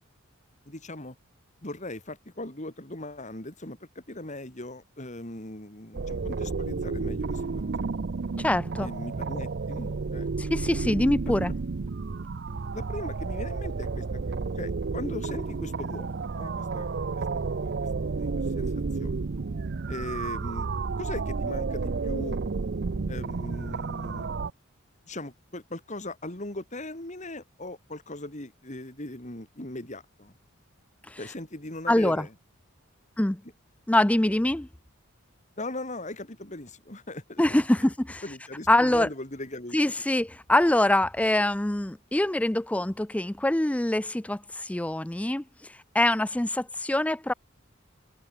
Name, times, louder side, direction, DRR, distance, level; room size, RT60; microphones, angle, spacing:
voice 1, 0.7-1.2 1.6-7.5 7.8-7.9 8.8-10.3 12.7-16.9 17.2-17.3 17.6-17.7 18.2-18.7 19.0-19.2 19.9-20.7 21.0-22.4 23.1-24.3 25.1-30.3 31.2-32.3 34.3-34.4 35.6-37.6 38.2-39.8, left 1 dB, 35° left, 3.5 m, -39 dB
sound 1, 5.9-24.5, right 4 dB, 50° right, 0.6 m, -31 dB
voice 2, 8.4-8.9 10.4-11.5 31.1-31.2 31.9-32.2 33.2-33.4 33.9-34.7 37.4-38.2 38.7-39.1 39.7-45.4 45.9-47.3, left 1 dB, 5° left, 0.4 m, -24 dB
head